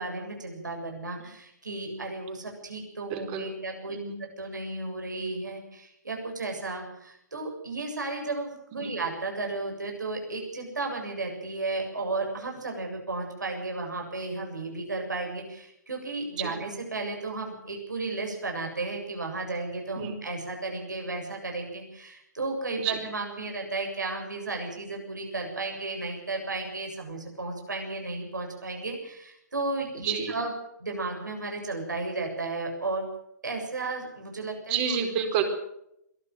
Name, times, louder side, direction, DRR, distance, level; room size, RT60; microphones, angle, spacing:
voice 1, 0.0-30.5 30.8-33.0 33.4-34.8, right 3 dB, 80° right, 2 dB, 7.7 m, -34 dB
voice 2, 3.1-3.5 3.9-4.1 8.7-8.9 16.4-16.5 20.0-20.1 22.8-23.0 29.9-30.4 34.7-35.4, right 8 dB, 30° right, 5 dB, 4.5 m, -29 dB
22.0 x 15.0 x 7.9 m, 0.77 s
figure-of-eight pair, 135°, 10 cm